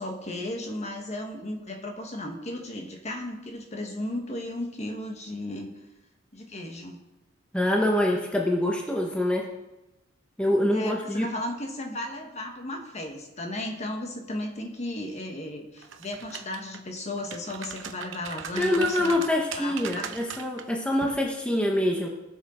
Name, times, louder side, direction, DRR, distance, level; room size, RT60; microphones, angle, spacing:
voice 1, 0.0-5.7 6.3-7.0 10.7-19.2 19.6-20.1, left 1 dB, 35° left, 3 dB, 1.4 m, -35 dB
voice 2, 7.5-9.5 10.4-11.3 18.6-22.1, left 1 dB, 5° left, -1 dB, 1.0 m, -25 dB
sound 1, 15.8-16.8 17.2-20.6 21.0-21.2, right 7 dB, 75° right, 0.8 m, -39 dB
17.5 x 6.7 x 4.3 m, 1.0 s
head